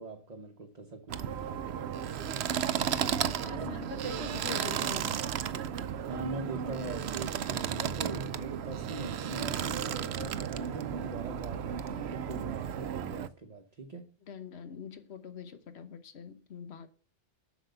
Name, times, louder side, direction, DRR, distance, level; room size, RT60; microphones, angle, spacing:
voice 1, 0.0-2.6 3.6-3.8 5.9-14.1, right 2 dB, 40° right, 0.9 m, -43 dB
sound 1, 1.1-13.3, right 8 dB, 70° right, 0.9 m, -34 dB
voice 2, 2.9-5.2 14.3-16.9, left 6 dB, 65° left, 1.3 m, -44 dB
7.9 x 6.2 x 6.8 m
omnidirectional pair, 1.2 m